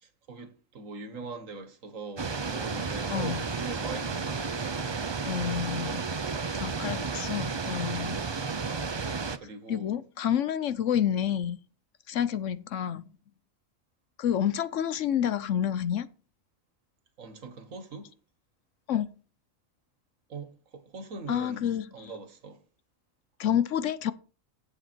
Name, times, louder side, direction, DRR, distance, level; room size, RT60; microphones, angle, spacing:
voice 1, 0.0-4.5 9.4-10.0 17.2-18.1 20.3-22.6, right 4 dB, 75° right, 1.9 m, -42 dB
sound 1, 2.2-9.4, right 4 dB, 35° right, 0.4 m, -32 dB
voice 2, 3.1-3.4 5.2-6.0 6.5-8.2 9.7-11.6 12.1-13.0 14.2-16.1 18.9-19.1 21.3-22.1 23.4-24.1, left 9 dB, 70° left, 1.0 m, -29 dB
10.0 x 8.0 x 4.5 m
omnidirectional pair, 1.4 m